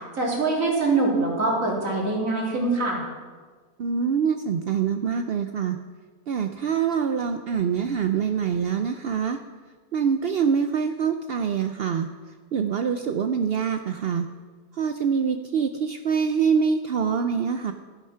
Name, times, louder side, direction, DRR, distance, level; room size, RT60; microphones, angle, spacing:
voice 1, 0.2-3.0, right 3 dB, 60° right, -3 dB, 3.3 m, -23 dB
voice 2, 3.8-5.8 6.3-9.4 9.9-12.1 12.5-14.3 14.7-17.7, right 6 dB, 80° right, 7 dB, 0.5 m, -25 dB
12.5 x 10.0 x 5.6 m, 1.5 s
omnidirectional pair, 1.6 m